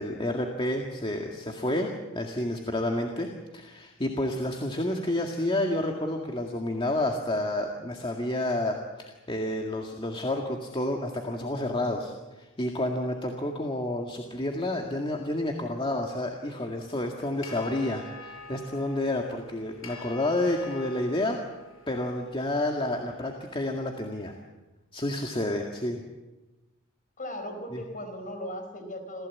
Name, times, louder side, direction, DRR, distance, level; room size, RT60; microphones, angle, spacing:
voice 1, 0.0-3.3 3.5-21.4 21.9-24.3 24.9-26.0 27.7-27.8, left 1 dB, 25° left, 2 dB, 2.0 m, -30 dB
sound 1, 17.2-23.6, left 3 dB, 80° left, 6.2 m, -47 dB
voice 2, 27.2-29.3, left 1 dB, 40° left, 7 dB, 4.4 m, -38 dB
28.0 x 16.0 x 8.5 m, 1.1 s
head